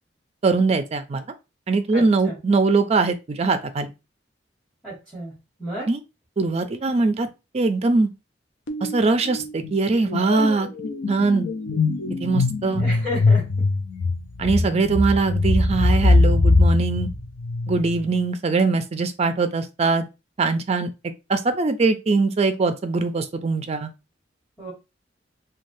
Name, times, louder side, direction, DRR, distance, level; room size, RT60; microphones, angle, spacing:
voice 1, 0.4-1.2 1.7-3.9 5.9-6.0 6.4-7.3 7.5-8.1 8.8-10.7 11.1-11.5 12.2-12.8 14.4-17.1 17.7-20.1 20.4-23.9, right 3 dB, 35° right, 0.4 m, -22 dB
voice 2, 1.9-2.4 4.8-5.3 5.6-5.9 12.8-13.5 24.6-24.7, equal, 5° left, 1.2 m, -32 dB
sound 1, 8.7-9.0 9.3-18.0, left 2 dB, 75° left, 0.5 m, -21 dB
3.2 x 2.3 x 2.6 m
head